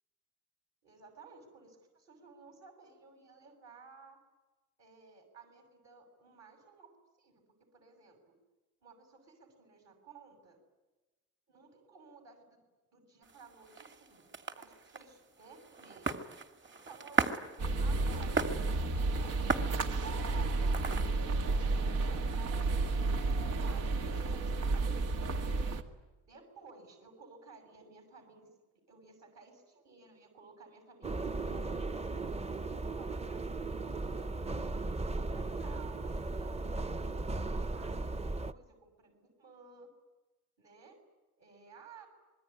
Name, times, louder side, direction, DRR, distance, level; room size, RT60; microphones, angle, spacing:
voice 1, 0.8-4.2 4.8-7.4 7.7-8.3 8.8-10.6 11.5-12.4 12.9-14.2 14.6-16.2 16.7-17.4 17.8-25.1 26.3-28.5 28.9-32.2 32.6-37.1 37.3-39.9 40.6-41.0 41.4-42.1, right 4 dB, 60° right, 5 dB, 6.5 m, -56 dB
sound 1, 13.2-21.3, right 4 dB, 40° right, 2.5 m, -38 dB
sound 2, 17.6-25.8, right 3 dB, 85° right, 2.1 m, -32 dB
sound 3, 31.0-38.5, right 3 dB, 20° right, 0.9 m, -36 dB
26.5 x 21.5 x 9.7 m, 1.1 s
cardioid pair, 90°, 30 cm